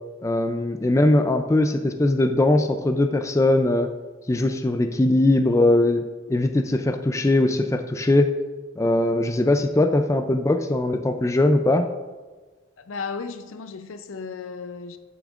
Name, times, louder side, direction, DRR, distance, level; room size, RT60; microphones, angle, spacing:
voice 1, 0.2-3.9 4.3-6.0 6.3-8.3 8.8-11.9, left 2 dB, 15° left, 0.3 m, -20 dB
voice 2, 12.8-15.0, left 5 dB, 85° left, 0.5 m, -34 dB
13.0 x 6.9 x 2.5 m
head